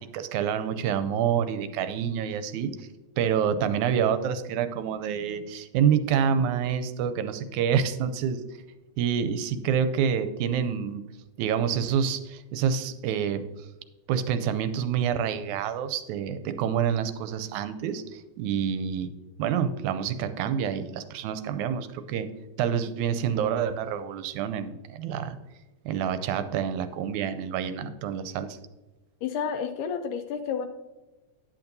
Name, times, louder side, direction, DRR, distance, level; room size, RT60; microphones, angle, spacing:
voice 1, 0.0-2.9 3.2-8.4 9.0-11.0 11.4-13.5 14.1-19.1 19.4-22.3 22.6-25.4 25.9-28.6, right 8 dB, 80° right, 10 dB, 1.8 m, -27 dB
voice 2, 29.2-30.7, left 7 dB, 85° left, 6 dB, 2.0 m, -30 dB
10.5 x 8.7 x 2.6 m, 1.1 s
omnidirectional pair, 3.6 m